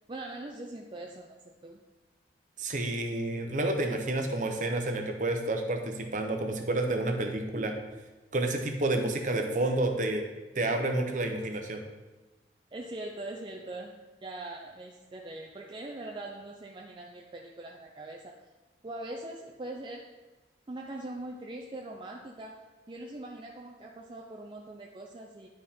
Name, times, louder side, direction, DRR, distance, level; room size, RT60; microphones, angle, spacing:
voice 1, 0.1-1.8 7.5-7.7 9.5-9.6 12.7-18.4 18.8-20.1 20.7-25.5, right 2 dB, 30° right, 0 dB, 0.5 m, -42 dB
voice 2, 2.6-7.7 8.3-10.2 10.5-11.8, right 2 dB, 45° right, 4 dB, 0.8 m, -29 dB
11.5 x 4.3 x 3.7 m, 1.2 s
head